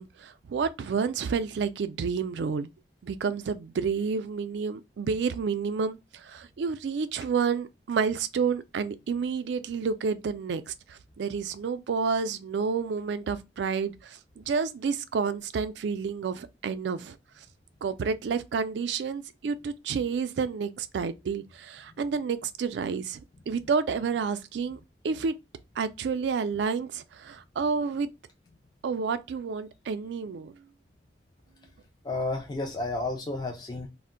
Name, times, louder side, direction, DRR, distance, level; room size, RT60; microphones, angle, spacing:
voice 1, 0.0-2.7 3.0-17.2 17.8-23.2 23.5-24.8 25.0-25.4 25.8-28.1 28.8-30.5, right 5 dB, 75° right, 0.3 m, -30 dB
voice 2, 32.0-33.9, left 2 dB, 25° left, 0.4 m, -31 dB
2.5 x 2.1 x 3.7 m
head